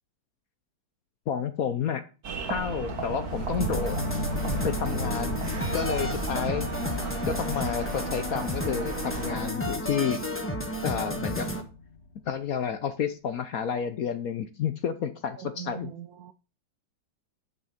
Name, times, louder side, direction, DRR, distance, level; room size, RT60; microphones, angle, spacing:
voice 1, 1.3-2.0 2.5-4.0 4.6-5.4 5.7-6.7 7.3-10.2 10.8-11.5 12.3-15.9, left 7 dB, 60° left, 0.9 m, -30 dB
sound 1, 2.2-9.5, right 5 dB, 50° right, 2.0 m, -35 dB
sound 2, 2.6-12.4, left 3 dB, 30° left, 2.0 m, -37 dB
sound 3, 3.6-11.6, equal, 10° left, 0.9 m, -33 dB
voice 2, 15.4-16.3, right 9 dB, 75° right, 0.8 m, -42 dB
10.5 x 6.1 x 5.6 m
omnidirectional pair, 2.2 m